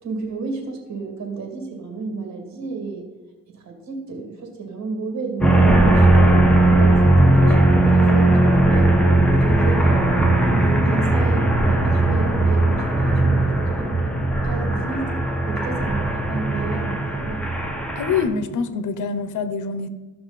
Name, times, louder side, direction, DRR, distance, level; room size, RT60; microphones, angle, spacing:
voice 1, 0.0-3.1 3.5-6.4 6.8-10.1 10.5-14.1 14.4-15.1 15.5-17.5, right 4 dB, 60° right, 3 dB, 2.4 m, -31 dB
sound 1, 5.4-18.2, right 2 dB, 5° left, 1.3 m, -18 dB
voice 2, 18.0-19.9, left 5 dB, 75° left, 11 dB, 0.8 m, -25 dB
14.5 x 5.9 x 4.1 m, 1.2 s
cardioid pair, 120°, 31 cm